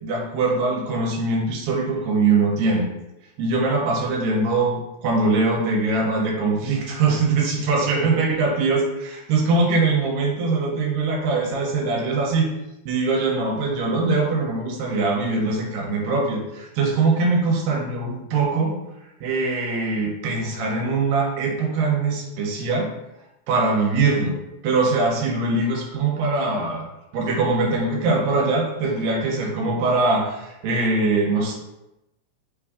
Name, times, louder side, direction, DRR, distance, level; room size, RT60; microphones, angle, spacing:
voice 1, 0.0-2.9 3.4-12.5 12.9-18.8 19.2-22.9 23.5-24.3 24.6-26.9 27.1-31.5, right 3 dB, 85° right, -1 dB, 2.5 m, -22 dB
5.3 x 2.6 x 3.5 m, 0.93 s
omnidirectional pair, 4.0 m